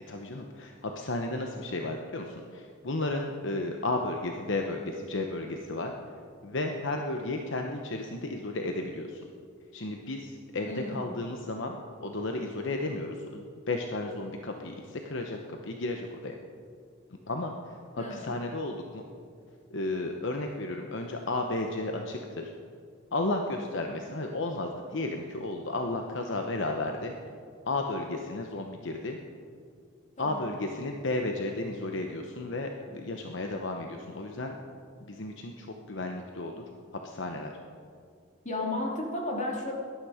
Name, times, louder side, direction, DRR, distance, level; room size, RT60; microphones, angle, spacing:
voice 1, 0.1-5.9 6.4-9.2 9.7-11.8 12.0-15.4 15.6-16.4 17.3-17.5 17.9-19.0 19.7-22.5 23.1-27.1 27.6-29.2 30.2-34.5 35.1-36.6 37.0-37.5, left 2 dB, 65° left, 3 dB, 0.9 m, -33 dB
voice 2, 10.6-11.2 18.0-18.4 30.2-30.4 38.4-39.7, left 2 dB, 40° left, -1 dB, 2.7 m, -33 dB
18.0 x 12.0 x 5.0 m, 2.2 s
head